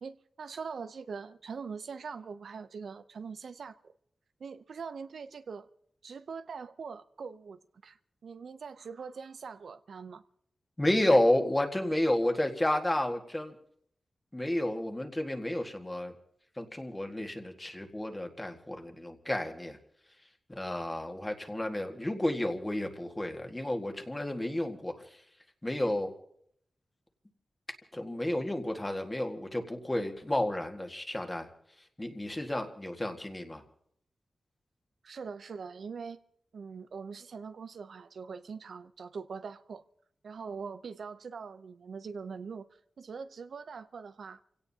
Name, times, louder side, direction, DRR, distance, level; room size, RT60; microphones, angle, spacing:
voice 1, 0.0-3.9 4.4-5.7 6.0-8.0 8.2-10.2 35.0-36.2 36.5-39.8 40.2-42.7 43.0-44.4, right 5 dB, 75° right, 0.6 m, -42 dB
voice 2, 10.8-13.6 14.3-16.1 16.6-19.8 20.5-25.1 25.6-26.1 27.9-31.5 32.0-33.6, left 1 dB, 15° left, 1.7 m, -31 dB
30.0 x 17.0 x 2.8 m
wide cardioid pair, 115°, 0 cm